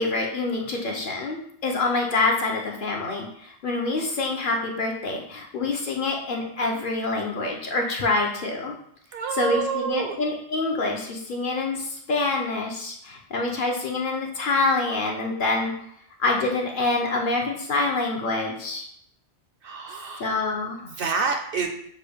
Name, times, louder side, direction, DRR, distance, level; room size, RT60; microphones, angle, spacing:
voice 1, 0.0-8.7 9.3-15.7 16.2-18.8 20.2-20.9, left 3 dB, 55° left, 0 dB, 0.8 m, -26 dB
voice 2, 9.1-10.2 17.0-17.1 19.6-20.4 20.8-21.7, right 5 dB, 65° right, 4 dB, 0.7 m, -28 dB
6.5 x 2.3 x 3.4 m, 0.69 s
omnidirectional pair, 1.2 m